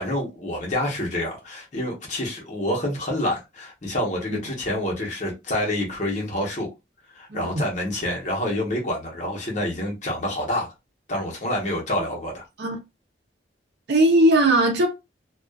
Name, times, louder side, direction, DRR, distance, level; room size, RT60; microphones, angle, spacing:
voice 1, 0.0-6.7 7.1-10.7 11.1-12.4, left 1 dB, 40° left, 1.0 m, -27 dB
voice 2, 7.3-7.6 12.6-12.8 13.9-14.9, right 1 dB, 60° right, 0.6 m, -18 dB
2.4 x 2.3 x 2.3 m
head